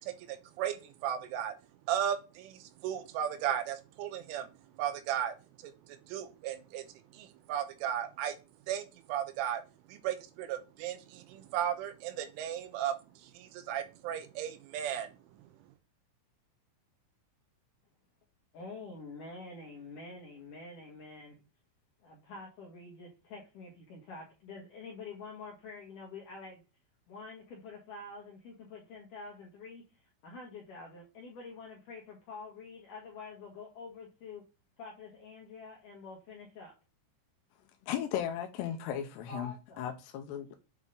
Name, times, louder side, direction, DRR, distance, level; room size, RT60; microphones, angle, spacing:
voice 1, 0.0-1.5 1.9-5.3 5.6-8.4 8.7-9.6 9.9-15.5, right 10 dB, 80° right, 3.3 m, -36 dB
voice 2, 18.5-21.4 22.0-26.6 27.1-34.4 34.8-36.7 39.3-39.8, left 3 dB, 65° left, 2.0 m, -47 dB
voice 3, 37.9-40.5, left 10 dB, 85° left, 2.4 m, -36 dB
8.2 x 3.9 x 3.7 m
omnidirectional pair, 5.7 m